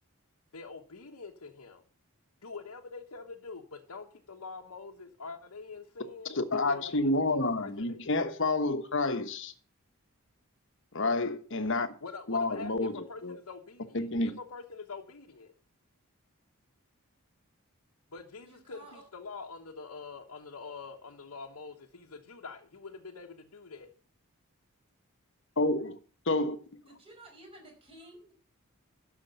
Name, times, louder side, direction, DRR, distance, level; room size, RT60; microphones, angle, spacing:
voice 1, 0.5-1.8 2.4-6.4 6.7-8.2 12.0-14.1 14.4-15.5 18.1-23.9, left 4 dB, 80° left, 1.2 m, -45 dB
voice 2, 6.3-9.5 10.9-11.9 12.3-13.3 13.9-14.4 25.6-26.0 26.3-26.6, left 2 dB, 55° left, 1.2 m, -29 dB
voice 3, 18.4-19.0 26.9-28.3, right 1 dB, 25° right, 5.2 m, -52 dB
12.0 x 6.9 x 6.8 m
head